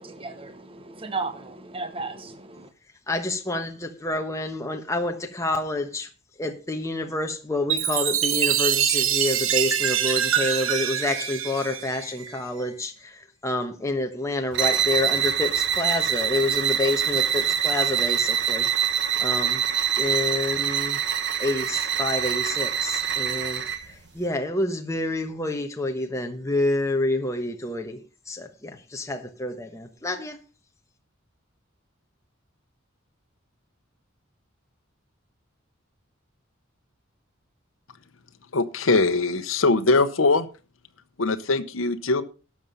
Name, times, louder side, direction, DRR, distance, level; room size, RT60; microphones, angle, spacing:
voice 1, 0.0-2.7, right 3 dB, 25° right, 1.1 m, -35 dB
voice 2, 3.1-6.1 6.4-19.6 20.0-21.0 21.4-28.0 28.3-30.4, left 2 dB, 15° left, 1.1 m, -28 dB
Chime, 7.7-12.4, right 9 dB, 75° right, 1.1 m, -24 dB
sound 1, 14.5-23.9, right 8 dB, 60° right, 1.2 m, -25 dB
voice 3, 38.5-40.5 41.2-42.2, left 3 dB, 75° left, 0.9 m, -21 dB
12.0 x 7.2 x 5.5 m
head